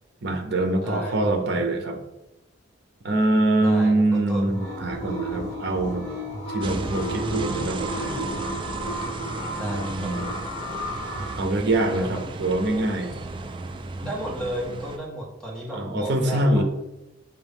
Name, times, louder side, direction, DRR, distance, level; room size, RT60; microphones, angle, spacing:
voice 1, 0.2-2.0 3.0-6.1 6.5-8.3 9.6-10.3 11.3-13.1 15.7-16.6, right 2 dB, 60° right, 5 dB, 0.7 m, -24 dB
voice 2, 0.8-1.4 3.6-4.5 9.6-10.1 12.0-12.2 14.0-16.6, right 1 dB, 5° left, -4 dB, 1.2 m, -33 dB
sound 1, 4.4-11.3, right 1 dB, 35° left, 1.6 m, -33 dB
sound 2, 6.6-15.0, right 3 dB, 25° right, 0.3 m, -35 dB
5.1 x 2.7 x 3.5 m, 0.94 s
head